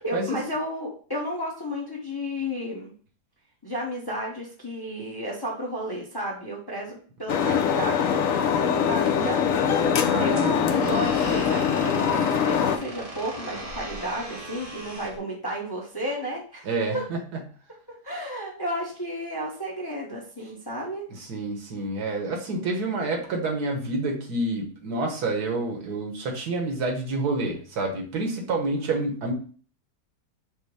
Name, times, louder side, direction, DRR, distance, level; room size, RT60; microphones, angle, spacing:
voice 1, 0.0-2.9 3.6-16.7 16.9-17.0 18.0-21.0, equal, 20° left, -3 dB, 0.7 m, -32 dB
sound 1, 7.3-12.8, left 7 dB, 65° left, 0.9 m, -23 dB
sound 2, 9.0-15.2, right 1 dB, 30° right, 0.8 m, -40 dB
voice 2, 10.0-10.5 10.8-11.0 16.6-17.2 21.2-29.3, right 2 dB, 70° right, 1 dB, 1.5 m, -28 dB
5.4 x 2.1 x 4.7 m, 0.43 s
omnidirectional pair, 1.8 m